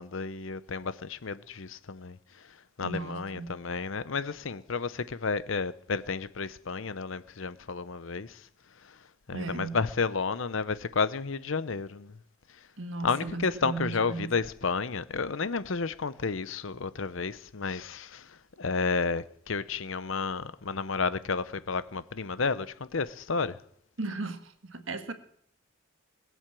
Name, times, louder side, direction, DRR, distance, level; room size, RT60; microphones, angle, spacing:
voice 1, 0.0-2.2 2.8-8.4 9.3-12.1 13.0-18.3 18.6-23.6, left 4 dB, 70° left, 0.7 m, -31 dB
voice 2, 2.8-3.5 9.3-9.8 12.8-14.4 24.0-25.1, right 3 dB, 65° right, 1.5 m, -36 dB
21.5 x 8.0 x 7.5 m
head